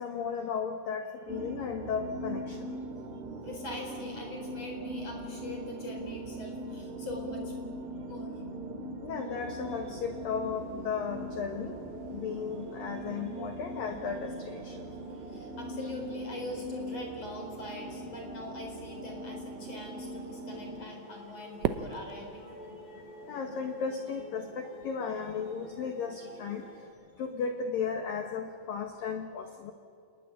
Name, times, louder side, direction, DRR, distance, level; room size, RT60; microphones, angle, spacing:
voice 1, 0.0-2.7 9.0-11.8 12.1-14.9 19.8-19.9 22.5-26.7 27.2-29.7, left 6 dB, 80° left, 4 dB, 2.0 m, -35 dB
sound 1, 1.3-20.9, right 1 dB, 70° right, 4.2 m, -41 dB
voice 2, 3.4-7.5 8.1-8.3 15.1-22.5, left 2 dB, 35° left, 2 dB, 4.8 m, -43 dB
sound 2, 9.3-26.9, right 2 dB, 45° right, 6.8 m, -50 dB
Fireworks, 21.6-23.9, right 10 dB, 90° right, 2.3 m, -36 dB
28.5 x 19.5 x 9.9 m, 2.3 s
omnidirectional pair, 6.0 m